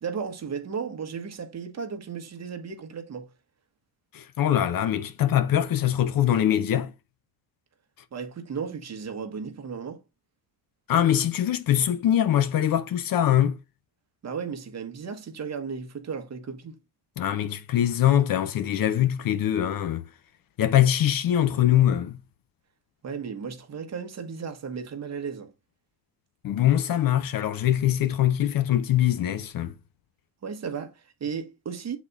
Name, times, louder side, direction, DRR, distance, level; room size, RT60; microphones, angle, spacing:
voice 1, 0.0-3.3 8.1-10.0 14.2-16.8 23.0-25.5 30.4-32.0, right 6 dB, 40° right, 1.3 m, -35 dB
voice 2, 4.1-6.9 10.9-13.6 17.2-20.1 20.6-22.2 26.4-29.7, left 11 dB, 55° left, 0.7 m, -23 dB
7.2 x 4.1 x 3.5 m
cardioid pair, 125°, 42 cm